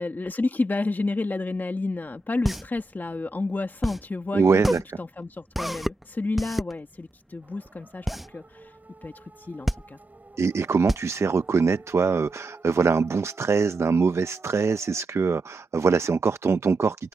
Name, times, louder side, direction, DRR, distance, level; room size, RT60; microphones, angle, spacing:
voice 1, 0.0-4.6 5.0-8.8 9.0-10.0, left 3 dB, 40° left, 1.6 m, -30 dB
sound 1, 2.0-12.3, equal, 5° right, 0.9 m, -30 dB
voice 2, 4.3-4.8 10.4-17.1, right 5 dB, 60° right, 0.6 m, -23 dB
sound 2, 7.4-15.0, right 2 dB, 35° right, 5.8 m, -50 dB
cardioid pair, 60°, 5 cm